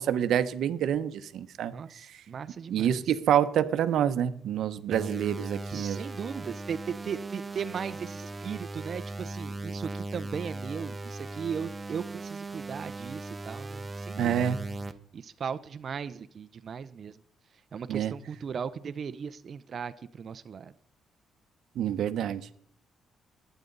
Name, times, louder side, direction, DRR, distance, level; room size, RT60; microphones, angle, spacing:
voice 1, 0.0-1.7 2.7-6.0 14.2-14.7 17.9-18.1 21.8-22.4, right 9 dB, 75° right, 1.0 m, -27 dB
voice 2, 1.7-3.0 5.7-14.4 15.1-17.2 17.7-20.7, right 7 dB, 50° right, 0.7 m, -37 dB
sound 1, 4.9-14.9, right 2 dB, 20° right, 1.2 m, -38 dB
21.0 x 9.2 x 4.0 m
cardioid pair, 90°, 0 cm